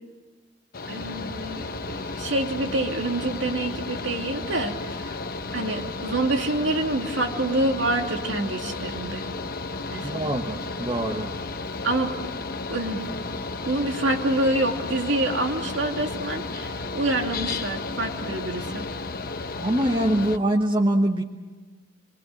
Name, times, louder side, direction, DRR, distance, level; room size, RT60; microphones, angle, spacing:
Mechanical fan, 0.7-20.4, left 3 dB, 50° left, 1.0 m, -33 dB
voice 1, 0.9-5.2 5.5-9.2 9.9-10.3 11.8-12.1 12.7-13.1 13.7-18.9, right 1 dB, 70° right, 3 dB, 2.7 m, -27 dB
voice 2, 10.0-11.3 19.6-21.2, right 1 dB, 25° right, 2 dB, 1.2 m, -23 dB
27.5 x 22.5 x 7.7 m, 1.3 s
head